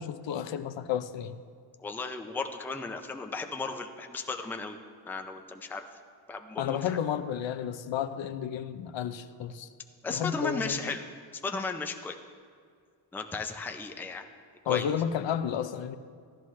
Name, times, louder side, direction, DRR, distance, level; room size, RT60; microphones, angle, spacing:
voice 1, 0.0-1.4 6.6-9.7 10.1-10.7 14.7-16.0, left 9 dB, 75° left, 11 dB, 0.6 m, -32 dB
voice 2, 1.8-4.8 5.0-5.8 6.3-7.0 10.0-11.1 11.4-12.2 13.1-14.2 14.7-15.0, left 4 dB, 5° left, 4 dB, 0.4 m, -35 dB
14.5 x 12.5 x 3.2 m, 2.1 s
wide cardioid pair, 160°, 46 cm